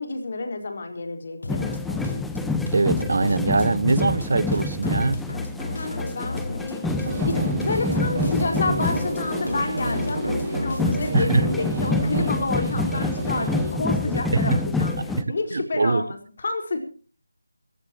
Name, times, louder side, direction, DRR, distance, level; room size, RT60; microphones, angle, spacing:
voice 1, 0.0-1.8 5.7-16.8, left 3 dB, 50° left, 4.8 m, -29 dB
sound 1, 1.4-11.3, left 2 dB, 65° left, 1.5 m, -34 dB
sound 2, 1.5-15.2, left 2 dB, 5° left, 0.8 m, -28 dB
voice 2, 2.7-5.2 11.1-11.5 14.1-14.6 15.2-16.1, right 3 dB, 60° right, 0.8 m, -22 dB
sound 3, 7.0-13.7, right 2 dB, 45° right, 5.9 m, -30 dB
26.0 x 15.5 x 3.0 m
figure-of-eight pair, 160°, 0 cm